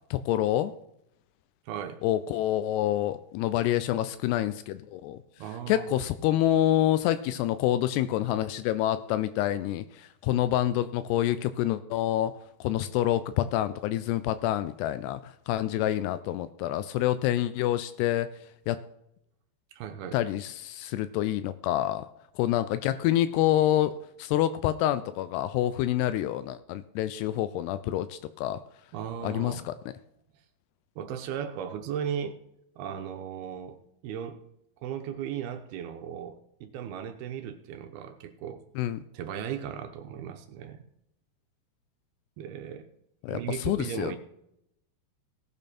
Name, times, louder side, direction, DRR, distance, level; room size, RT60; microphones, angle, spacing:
voice 1, 0.1-0.7 2.0-5.2 5.7-12.3 12.6-18.3 18.7-18.8 20.1-22.1 22.4-23.9 24.2-28.6 29.2-29.7 38.8-39.0 43.2-44.2, left 13 dB, 85° left, 13 dB, 2.6 m, -27 dB
voice 2, 1.7-2.0 5.4-6.0 19.7-20.2 28.9-29.7 31.0-32.4 32.8-34.4 34.8-38.6 39.1-40.8 42.4-42.9 43.3-44.2, right 8 dB, 75° right, 7 dB, 2.6 m, -36 dB
18.0 x 7.1 x 4.3 m, 0.78 s
omnidirectional pair, 4.7 m